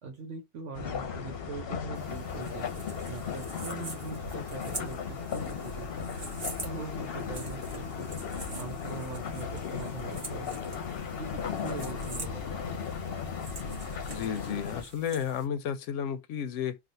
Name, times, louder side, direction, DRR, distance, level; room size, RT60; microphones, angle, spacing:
voice 1, 0.0-2.7 3.1-6.1 6.6-8.1 8.5-10.7 11.1-12.6, right 4 dB, 80° right, 1.2 m, -42 dB
sound 1, 0.7-14.8, left 6 dB, 60° left, 0.8 m, -36 dB
sound 2, 1.9-15.5, right 2 dB, 35° right, 1.1 m, -45 dB
voice 2, 14.1-16.8, left 8 dB, 85° left, 0.9 m, -32 dB
3.4 x 2.4 x 2.6 m
omnidirectional pair, 1.2 m